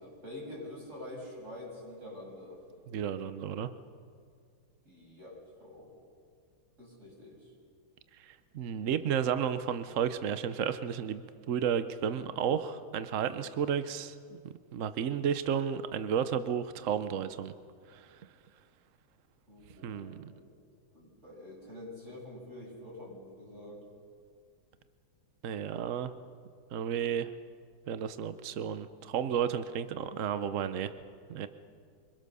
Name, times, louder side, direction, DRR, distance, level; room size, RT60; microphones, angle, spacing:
voice 1, 0.0-2.6 4.8-5.9 6.8-7.5 19.5-20.5 20.9-23.8, left 1 dB, 30° right, -3 dB, 7.3 m, -46 dB
voice 2, 2.9-3.7 8.2-17.5 17.9-18.2 19.8-20.3 25.4-26.1 26.7-27.3 27.9-30.9 31.3-31.5, right 8 dB, 80° right, 12 dB, 0.7 m, -32 dB
25.0 x 21.5 x 6.8 m, 2.2 s
omnidirectional pair, 2.4 m